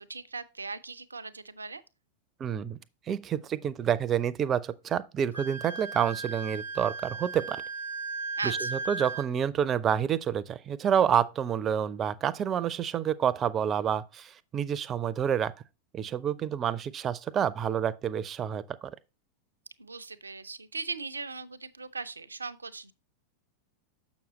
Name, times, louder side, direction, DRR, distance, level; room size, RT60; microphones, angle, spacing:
voice 1, 0.0-1.8 8.4-8.8 19.8-22.9, right 4 dB, 80° right, 0.5 m, -39 dB
voice 2, 2.4-2.8 3.1-7.6 8.4-15.5 15.9-18.9, right 8 dB, 25° right, 0.5 m, -28 dB
Wind instrument woodwind instrument, 5.3-9.3, right 3 dB, 85° left, 1.3 m, -36 dB
7.0 x 6.2 x 3.0 m
figure-of-eight pair, 90°, 0 cm